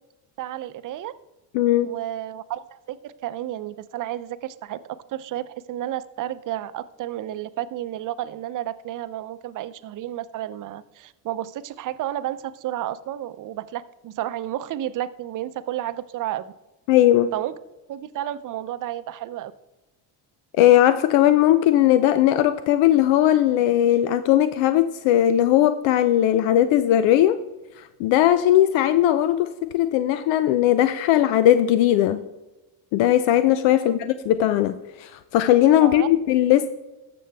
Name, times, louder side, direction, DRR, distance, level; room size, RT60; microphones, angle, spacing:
voice 1, 0.4-1.1 1.8-4.8 5.1-16.5 17.3-17.6 17.9-19.5 33.8-34.0 35.8-36.1, right 13 dB, 45° right, 14 dB, 0.6 m, -31 dB
voice 2, 1.5-1.9 16.9-17.3 20.6-27.4 28.0-32.2 32.9-36.7, left 12 dB, 85° left, 12 dB, 0.6 m, -18 dB
13.0 x 7.0 x 3.4 m, 1.0 s
cardioid pair, 105°, 43 cm